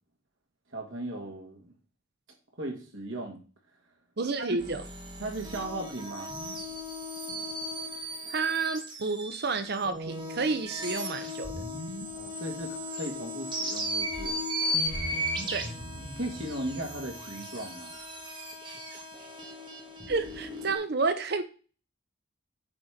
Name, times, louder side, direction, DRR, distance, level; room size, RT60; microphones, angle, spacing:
voice 1, 0.7-1.7 2.6-3.4 4.4-4.6 5.2-6.3 12.1-14.4 16.2-17.9, right 1 dB, 85° right, 2.3 m, -37 dB
voice 2, 4.2-4.8 8.3-11.5 15.5-15.7 18.6-18.8 20.1-21.4, right 4 dB, 55° right, 0.8 m, -30 dB
sound 1, 4.6-20.8, equal, 25° right, 1.4 m, -36 dB
8.6 x 4.4 x 5.1 m
head